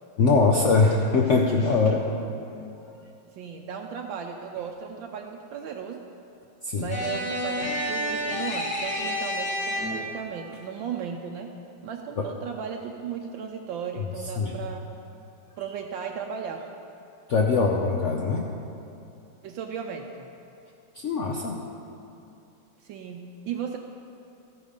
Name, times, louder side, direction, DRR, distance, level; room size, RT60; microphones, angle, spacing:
voice 1, 0.2-2.1 6.6-6.9 12.2-12.3 14.4-14.5 17.3-18.5 21.0-21.6, left 4 dB, 80° left, 0 dB, 0.6 m, -22 dB
voice 2, 2.9-6.0 6.7-11.5 11.8-14.9 15.6-16.7 19.4-20.3 22.8-23.8, right 7 dB, 75° right, 2 dB, 1.3 m, -36 dB
sound 1, 6.9-10.2, equal, 45° left, 2.3 m, -29 dB
13.5 x 9.3 x 5.1 m, 2.7 s
omnidirectional pair, 2.2 m